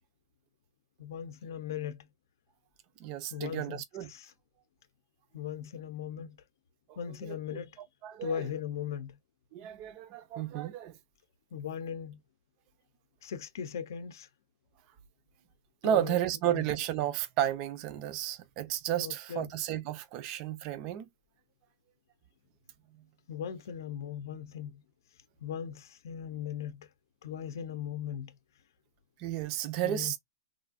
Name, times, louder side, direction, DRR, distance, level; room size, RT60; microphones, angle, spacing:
voice 1, 1.0-2.1 3.3-3.8 4.1-4.3 5.3-6.4 7.0-7.7 8.2-9.2 11.5-12.2 13.2-14.3 15.8-16.2 16.5-16.6 19.0-19.5 23.3-24.8 25.4-26.9 27.2-28.3 29.8-30.1, left 8 dB, 65° left, 0.6 m, -38 dB
voice 2, 3.0-4.1 6.9-7.4 7.8-8.5 9.5-10.9 15.8-21.1 29.2-30.2, right 12 dB, 30° right, 0.5 m, -33 dB
3.1 x 2.5 x 2.4 m
hypercardioid pair, 165°, 2 cm